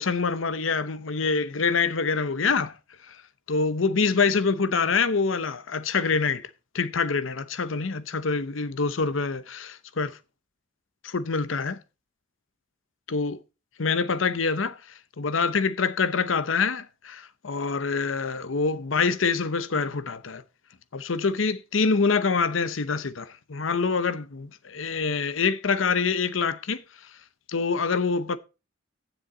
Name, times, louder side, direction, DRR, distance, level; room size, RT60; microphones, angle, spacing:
voice 1, 0.0-2.7 3.5-6.5 6.7-10.2 11.0-11.8 13.1-13.4 13.8-14.7 15.2-20.4 20.9-26.8 27.5-28.4, left 4 dB, 85° left, 0.8 m, -25 dB
15.5 x 7.0 x 3.8 m
head